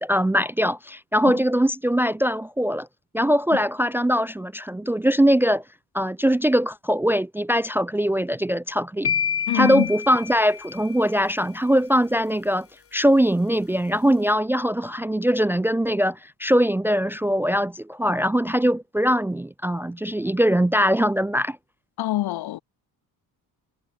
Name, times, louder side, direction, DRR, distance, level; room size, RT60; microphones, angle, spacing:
voice 1, 0.0-2.9 3.1-5.6 5.9-9.1 9.5-12.7 12.9-21.6, equal, 5° right, 0.5 m, -21 dB
sound 1, 9.0-11.2, left 7 dB, 35° left, 5.1 m, -28 dB
voice 2, 9.5-9.9 22.0-22.6, left 15 dB, 90° left, 7.9 m, -25 dB
cardioid pair, 165°, 37 cm